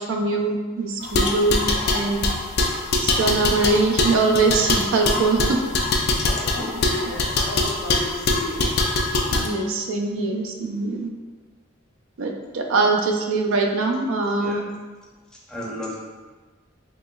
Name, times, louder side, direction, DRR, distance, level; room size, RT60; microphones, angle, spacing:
voice 1, 0.0-2.3 3.0-5.6 9.3-11.1 12.2-14.6, right 3 dB, 75° right, 2 dB, 0.4 m, -22 dB
sound 1, 1.0-9.5, left 2 dB, 55° left, 0.4 m, -23 dB
voice 2, 6.3-8.8, left 1 dB, 80° left, -3 dB, 0.8 m, -34 dB
voice 3, 15.3-15.9, equal, 5° left, -4 dB, 0.6 m, -34 dB
4.0 x 2.9 x 2.3 m, 1.4 s
head